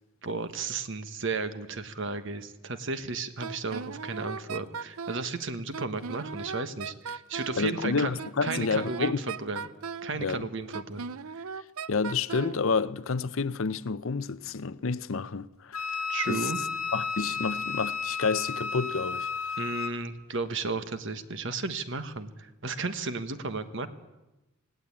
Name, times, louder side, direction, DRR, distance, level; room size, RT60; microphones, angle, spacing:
voice 1, 0.2-9.7 10.0-11.1 11.3-11.4 16.1-16.6 19.6-23.9, right 3 dB, 60° right, 1.3 m, -34 dB
Wind instrument woodwind instrument, 3.4-5.3 5.7-7.7 8.2-10.2 10.7-12.6, right 5 dB, 80° right, 0.6 m, -38 dB
voice 2, 7.6-9.2 10.2-10.5 11.9-15.9 16.3-16.5 16.9-19.3, left 4 dB, 65° left, 0.6 m, -29 dB
Wind instrument woodwind instrument 2, 15.7-20.0, left 5 dB, 85° left, 1.6 m, -33 dB
19.0 x 17.5 x 8.6 m
head